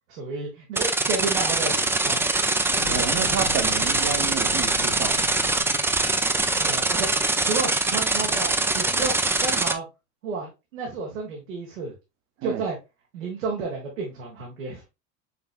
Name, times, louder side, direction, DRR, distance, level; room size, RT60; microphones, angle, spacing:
voice 1, 0.1-2.3 6.6-7.1 7.5-9.1 9.4-9.9 10.2-11.9 12.4-12.8 13.1-14.8, right 4 dB, 90° right, 1.4 m, -31 dB
sound 1, 0.8-9.7, right 2 dB, 5° right, 0.4 m, -23 dB
Fire, 2.6-7.8, left 6 dB, 80° left, 0.9 m, -40 dB
voice 2, 2.9-5.3 12.4-12.6, right 9 dB, 45° right, 0.8 m, -30 dB
5.8 x 3.3 x 2.4 m
hypercardioid pair, 90°, 38 cm